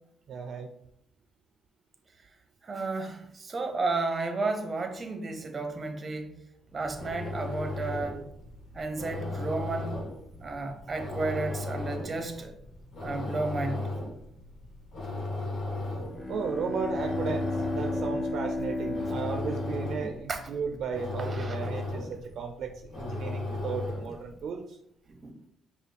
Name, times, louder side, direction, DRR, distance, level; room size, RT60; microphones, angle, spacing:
voice 1, 0.3-0.7 16.3-24.8, right 5 dB, 65° right, 0.4 m, -35 dB
voice 2, 2.6-6.3 6.7-8.2 8.7-10.0 10.4-12.5 13.0-13.8 20.3-20.4 21.2-21.7 25.1-25.5, right 3 dB, 35° right, 0.7 m, -32 dB
sound 1, 6.7-24.3, left 2 dB, 50° left, 1.4 m, -36 dB
Bowed string instrument, 16.0-20.8, left 2 dB, 25° left, 0.6 m, -34 dB
5.5 x 2.3 x 3.3 m
cardioid pair, 90°, 0 cm